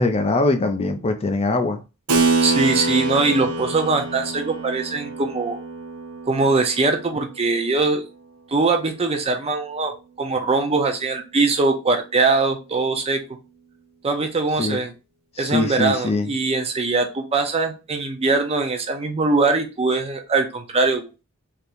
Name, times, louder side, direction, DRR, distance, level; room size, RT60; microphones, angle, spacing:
voice 1, 0.0-1.8 14.6-14.8 15.4-16.3, left 2 dB, 30° left, 7 dB, 0.4 m, -22 dB
Keyboard (musical), 2.1-8.1, right 3 dB, 80° right, 0.7 m, -26 dB
voice 2, 2.4-5.6 6.3-8.1 8.5-9.9 10.2-13.2 14.0-14.9 15.4-21.1, right 3 dB, 30° right, 4 dB, 0.6 m, -21 dB
3.5 x 2.8 x 2.5 m, 0.29 s
head